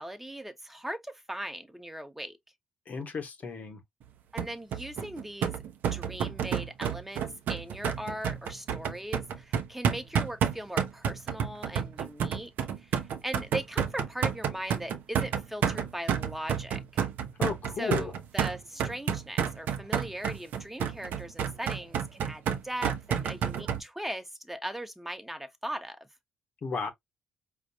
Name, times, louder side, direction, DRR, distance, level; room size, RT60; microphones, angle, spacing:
voice 1, 0.0-2.4 4.3-5.5 5.9-12.5 12.8-17.1 17.8-26.1, right 1 dB, 5° right, 1.0 m, -39 dB
voice 2, 2.9-3.8 17.4-18.1 26.6-26.9, left 5 dB, 50° left, 1.0 m, -33 dB
sound 1, 4.4-23.8, right 8 dB, 60° right, 0.7 m, -30 dB
5.0 x 2.4 x 2.6 m
hypercardioid pair, 45°, 3 cm